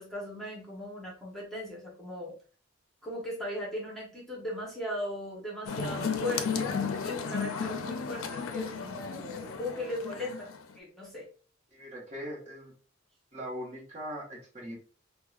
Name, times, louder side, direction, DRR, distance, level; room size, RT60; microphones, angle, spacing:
voice 1, 0.0-2.3 3.0-6.7 7.0-10.5 10.8-11.3, left 1 dB, ahead, -4 dB, 0.9 m, -38 dB
sound 1, 5.7-10.7, left 5 dB, 90° left, 0.5 m, -34 dB
voice 2, 11.7-12.7 13.3-14.8, equal, 35° right, -2 dB, 1.1 m, -40 dB
4.6 x 2.2 x 2.4 m, 0.40 s
head